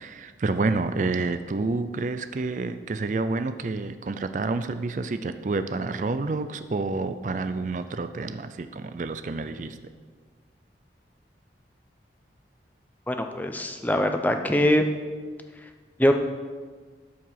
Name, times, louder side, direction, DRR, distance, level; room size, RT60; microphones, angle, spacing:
voice 1, 0.0-9.8, right 3 dB, 45° right, 10 dB, 0.4 m, -29 dB
voice 2, 13.1-14.8 16.0-16.1, equal, 10° left, 6 dB, 0.6 m, -22 dB
13.0 x 4.7 x 5.7 m, 1.5 s
head